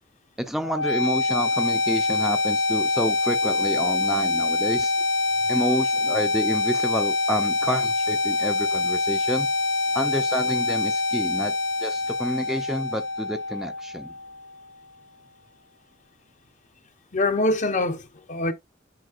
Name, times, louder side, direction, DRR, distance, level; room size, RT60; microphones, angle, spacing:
voice 1, 0.4-4.9 5.5-9.5 9.9-11.5 11.8-14.1, equal, ahead, 0.5 m, -29 dB
sound 1, 0.6-14.6, left 3 dB, 70° left, 0.5 m, -25 dB
voice 2, 17.1-18.5, left 2 dB, 40° left, 0.9 m, -24 dB
9.3 x 4.5 x 2.5 m
head